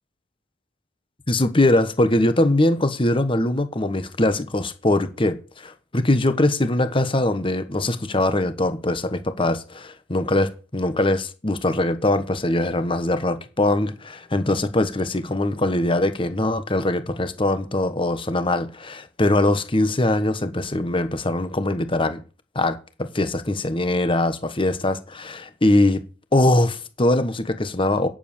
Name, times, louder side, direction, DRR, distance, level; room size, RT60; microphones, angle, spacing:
voice 1, 1.3-22.2 22.5-26.0 26.3-28.1, left 1 dB, 30° left, 1.2 m, -22 dB
10.0 x 7.5 x 6.9 m
head